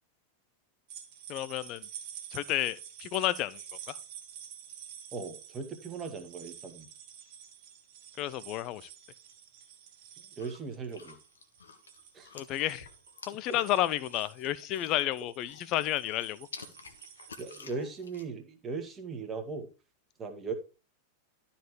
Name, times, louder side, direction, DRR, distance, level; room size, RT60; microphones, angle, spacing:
sound 1, 0.9-17.6, right 9 dB, 50° right, 1.7 m, -49 dB
voice 1, 1.3-1.9 2.3-3.6 3.9-4.0 8.2-8.9 12.3-12.9 13.3-16.5, left 14 dB, 40° left, 0.6 m, -31 dB
voice 2, 5.1-6.9 10.4-11.2 12.1-12.3 17.4-19.7 20.2-20.5, right 4 dB, 20° right, 1.9 m, -38 dB
sound 2, 10.4-15.1 15.4-18.2, left 5 dB, 70° left, 1.3 m, -51 dB
12.5 x 4.3 x 4.8 m
figure-of-eight pair, 90°, 0 cm